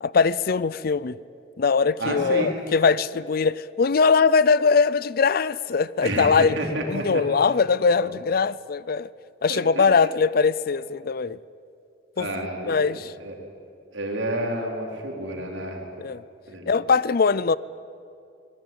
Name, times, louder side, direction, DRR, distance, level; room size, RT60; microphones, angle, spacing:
voice 1, 0.0-1.2 1.6-6.6 6.9-9.1 9.4-11.4 12.2-13.1 16.0-16.2 16.7-17.6, left 5 dB, 50° left, 19 dB, 0.5 m, -21 dB
voice 2, 2.0-2.5 6.0-7.2 8.0-8.1 9.5-9.8 12.2-13.3 13.9-15.8 16.5-16.7, right 1 dB, 80° right, 1 dB, 4.4 m, -30 dB
25.0 x 19.5 x 9.2 m, 2.5 s
head